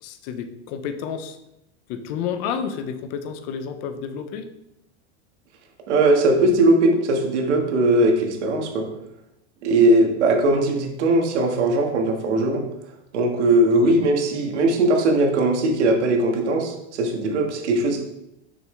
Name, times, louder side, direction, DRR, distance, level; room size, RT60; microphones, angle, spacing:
voice 1, 0.0-1.4 1.9-4.5 13.7-14.0, left 7 dB, 25° left, 8 dB, 0.4 m, -30 dB
voice 2, 5.9-8.9 9.6-12.7 13.1-18.0, right 2 dB, 85° right, 2 dB, 1.9 m, -19 dB
7.1 x 6.1 x 3.3 m, 0.84 s
supercardioid pair, 175°, 34 cm